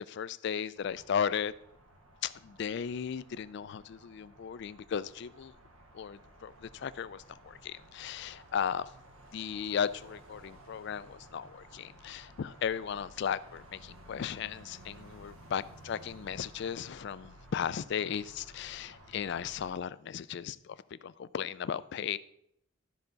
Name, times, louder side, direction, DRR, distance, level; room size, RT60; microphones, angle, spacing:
voice 1, 0.1-1.5 2.2-5.5 5.9-8.9 9.3-20.8 21.0-22.2, left 7 dB, 55° left, 16 dB, 0.3 m, -36 dB
sound 1, 0.7-19.7, right 1 dB, 80° right, 1.1 m, -55 dB
12.0 x 5.7 x 3.9 m, 0.77 s
head